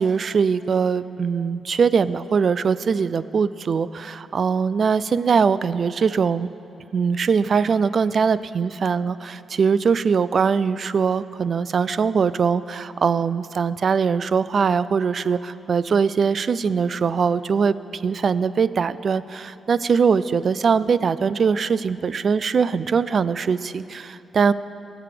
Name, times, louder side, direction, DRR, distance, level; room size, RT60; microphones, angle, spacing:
voice 1, 0.0-6.5 6.9-24.5, right 6 dB, 45° right, 16 dB, 0.3 m, -21 dB
20.0 x 7.0 x 5.0 m, 2.7 s
wide cardioid pair, 140°, 0 cm